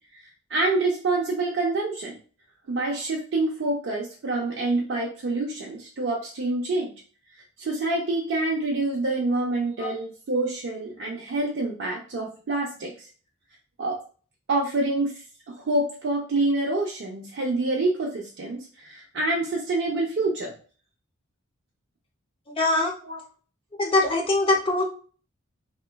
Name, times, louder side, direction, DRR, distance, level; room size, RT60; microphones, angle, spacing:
voice 1, 0.5-2.2 2.7-6.9 7.6-13.1 13.8-14.0 14.5-15.1 15.5-20.5 23.0-23.2, right 2 dB, 60° right, -1 dB, 0.4 m, -27 dB
voice 2, 22.5-23.0 23.8-24.8, left 2 dB, 25° left, 0 dB, 0.5 m, -22 dB
2.9 x 2.2 x 2.2 m, 0.40 s
head